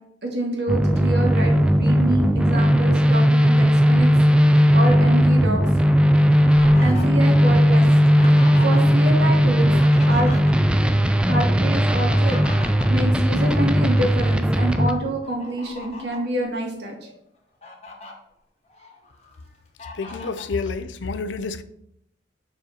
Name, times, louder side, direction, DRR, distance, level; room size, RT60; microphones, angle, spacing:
voice 1, 0.2-4.1 4.4-5.6 6.8-7.9 8.4-9.7 10.1-10.3 11.3-12.4 12.9-17.1, right 1 dB, 65° right, 1.9 m, -27 dB
sound 1, 0.7-14.9, equal, 5° right, 0.3 m, -17 dB
Fowl, 6.0-9.1 9.4-10.9 11.8-13.9 14.4-14.6 15.2-16.3 16.9-17.0 17.4-18.1 18.7-19.4 19.8-20.5, left 2 dB, 35° left, 1.2 m, -40 dB
voice 2, 19.9-21.6, left 4 dB, 85° left, 0.6 m, -29 dB
5.3 x 4.9 x 6.4 m
head